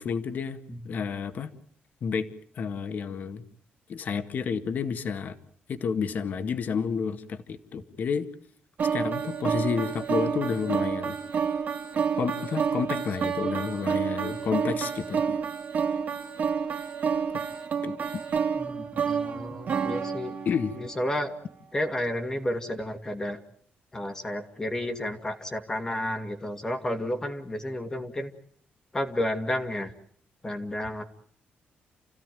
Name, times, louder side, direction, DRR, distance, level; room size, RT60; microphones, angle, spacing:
voice 1, 0.0-0.6 0.9-1.5 2.0-2.3 2.6-3.4 3.9-5.4 5.7-8.3 8.9-11.2 12.2-15.4 17.8-18.2 20.5-20.7, left 6 dB, 50° left, 9 dB, 1.9 m, -30 dB
sound 1, 8.8-21.0, right 6 dB, 50° right, 2.7 m, -29 dB
voice 2, 18.6-20.4 20.8-21.3 21.7-23.4 23.9-28.3 28.9-29.9 30.4-31.0, left 1 dB, 15° left, 6 dB, 2.1 m, -31 dB
30.0 x 16.0 x 9.3 m, 0.62 s
cardioid pair, 155°, 4 cm